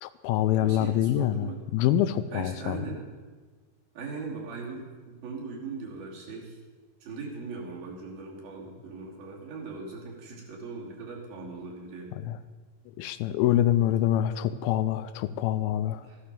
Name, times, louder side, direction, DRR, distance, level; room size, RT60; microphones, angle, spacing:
voice 1, 0.0-2.8 12.2-12.4 13.0-16.1, left 12 dB, 90° left, 12 dB, 2.4 m, -26 dB
voice 2, 0.6-1.6 2.3-3.0 3.9-6.6 7.0-12.1 16.0-16.2, right 4 dB, 85° right, -2 dB, 4.7 m, -39 dB
14.5 x 11.5 x 6.8 m, 1.4 s
omnidirectional pair, 4.1 m